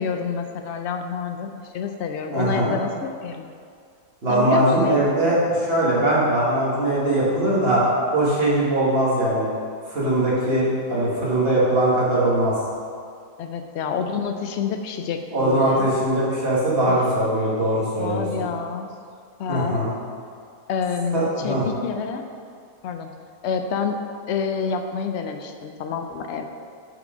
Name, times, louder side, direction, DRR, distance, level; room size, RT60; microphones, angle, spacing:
voice 1, 0.0-3.5 4.3-4.9 5.2-5.5 13.4-15.9 16.9-17.0 18.0-18.9 19.4-19.8 20.7-22.2 22.8-23.1 23.4-24.0 24.3-26.4, left 6 dB, 65° left, 6 dB, 0.8 m, -28 dB
voice 2, 2.3-2.7 4.2-7.8 8.1-9.5 9.9-12.5 15.3-18.2 19.5-19.9 21.1-21.6, right 1 dB, 45° right, -7 dB, 2.0 m, -21 dB
5.9 x 5.9 x 5.1 m, 2.3 s
omnidirectional pair, 1.5 m